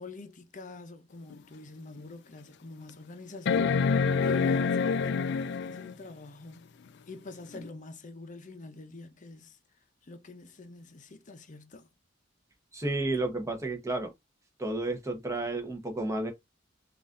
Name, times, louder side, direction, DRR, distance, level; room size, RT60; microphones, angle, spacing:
voice 1, 0.0-6.7 7.1-9.6 10.0-11.9, left 3 dB, 40° left, 0.7 m, -46 dB
sound 1, 1.3-1.4 2.0-2.1 3.5-5.9 7.6-7.7, left 5 dB, 60° left, 0.4 m, -26 dB
voice 2, 12.7-14.1 14.6-16.3, right 2 dB, 15° right, 1.0 m, -31 dB
4.0 x 2.6 x 3.7 m
head